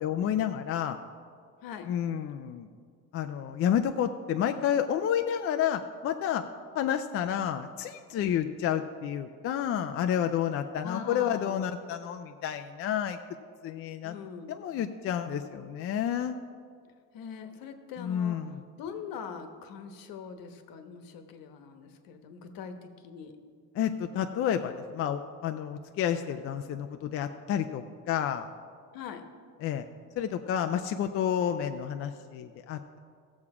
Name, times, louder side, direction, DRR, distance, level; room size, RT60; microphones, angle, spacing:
voice 1, 0.0-1.0 1.8-2.7 3.1-6.4 6.7-13.2 13.6-14.2 14.5-16.4 18.0-18.6 23.7-28.5 29.6-29.8 30.2-33.0, left 9 dB, 40° left, 7 dB, 0.4 m, -30 dB
voice 2, 10.8-11.6 14.0-14.5 17.1-18.4 18.8-22.7 23.0-23.3 28.9-29.2, left 7 dB, 65° left, 7 dB, 1.2 m, -42 dB
16.5 x 7.2 x 4.8 m, 2.1 s
cardioid pair, 155°, 37 cm